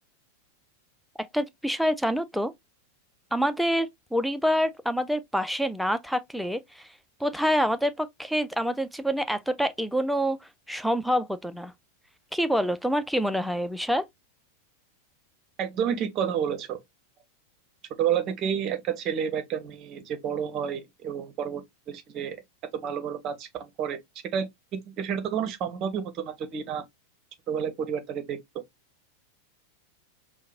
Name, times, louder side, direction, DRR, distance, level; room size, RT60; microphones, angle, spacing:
voice 1, 1.2-2.5 3.3-6.9 7.2-10.4 10.7-11.7 12.3-14.1, equal, ahead, 0.4 m, -26 dB
voice 2, 15.6-16.8 18.0-22.4 22.7-24.0 24.3-26.8 27.5-28.4, right 8 dB, 35° right, 0.7 m, -30 dB
4.6 x 2.1 x 2.5 m
figure-of-eight pair, 90°, 0 cm